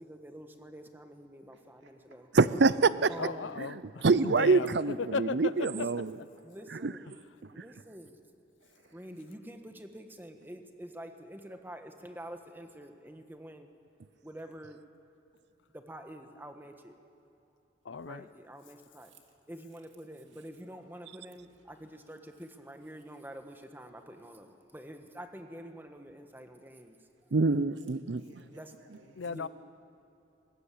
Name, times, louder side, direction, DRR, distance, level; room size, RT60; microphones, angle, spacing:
voice 1, 0.0-2.3 3.1-3.6 5.7-5.8 6.4-7.1 7.5-8.2 8.9-13.7 14.2-14.8 15.7-17.0 18.0-19.1 19.5-27.0 28.5-28.7 29.2-29.5, right 1 dB, 10° right, 6 dB, 1.3 m, -47 dB
voice 2, 1.5-1.9 8.6-9.2 10.4-10.5 20.3-20.4 28.1-29.3, right 2 dB, 85° right, 2 dB, 2.6 m, -61 dB
voice 3, 2.3-3.1 4.0-6.1 6.7-6.9 27.3-28.2, right 4 dB, 65° right, 16 dB, 0.5 m, -25 dB
voice 4, 3.2-5.9 17.8-18.3 29.2-29.5, left 4 dB, 85° left, 16 dB, 0.6 m, -36 dB
21.0 x 18.0 x 8.5 m, 2.8 s
head